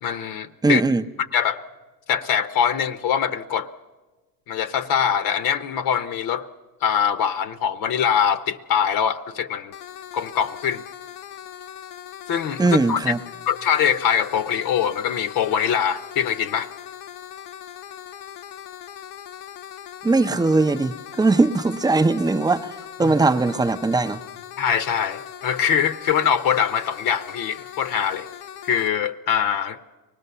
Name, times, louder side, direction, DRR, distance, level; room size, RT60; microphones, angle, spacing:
voice 1, 0.0-0.8 1.3-1.6 2.1-3.7 4.5-6.5 6.8-9.7 10.1-10.8 12.3-12.6 12.9-13.0 13.5-16.7 23.0-23.1 24.6-28.3 28.6-29.8, left 8 dB, 50° left, 0.9 m, -23 dB
voice 2, 0.6-1.0 12.6-13.2 20.0-24.2, right 3 dB, 10° right, 0.7 m, -20 dB
sound 1, 9.7-28.9, left 10 dB, 90° left, 0.9 m, -40 dB
24.0 x 18.5 x 6.8 m
supercardioid pair, 95°, 44 cm